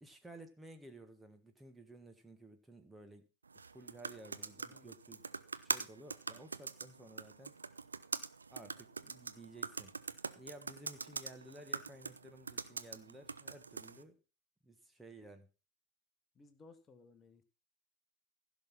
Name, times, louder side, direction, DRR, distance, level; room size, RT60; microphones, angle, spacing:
voice 1, 0.0-3.3 3.5-5.2 5.6-7.6 8.5-10.0 10.3-14.2 14.6-15.5, right 2 dB, 5° right, 7 dB, 1.4 m, -55 dB
sound 1, 3.5-14.0, right 4 dB, 75° right, 0.6 m, -43 dB
voice 2, 4.3-4.9 13.2-13.3 16.3-17.4, left 3 dB, 20° left, 9 dB, 1.4 m, -61 dB
15.5 x 6.2 x 5.9 m, 0.33 s
figure-of-eight pair, 90°, 0 cm